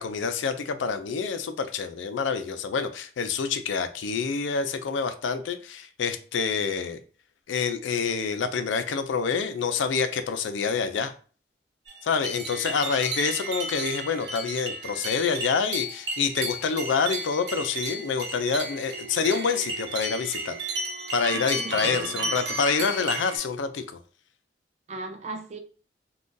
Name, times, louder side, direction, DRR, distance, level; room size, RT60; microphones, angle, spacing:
voice 1, 0.0-7.0 7.5-11.1 12.0-20.5 21.1-24.0, left 5 dB, 90° left, 10 dB, 0.4 m, -27 dB
sound 1, 11.9-23.4, right 2 dB, 65° right, 0.9 m, -34 dB
sound 2, 18.3-23.5, right 3 dB, 90° right, 0.7 m, -39 dB
voice 2, 21.3-22.4 24.9-25.6, right 2 dB, 40° right, 6 dB, 0.4 m, -38 dB
2.6 x 2.3 x 3.7 m, 0.39 s
head